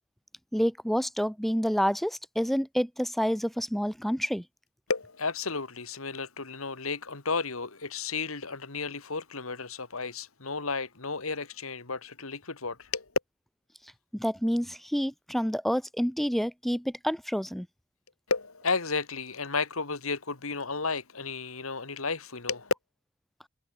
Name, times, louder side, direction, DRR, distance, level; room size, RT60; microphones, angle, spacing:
voice 1, 0.5-4.4 14.1-17.7, equal, ahead, 0.6 m, -28 dB
voice 2, 4.9-13.1 18.3-22.7, left 4 dB, 90° left, 2.5 m, -33 dB
head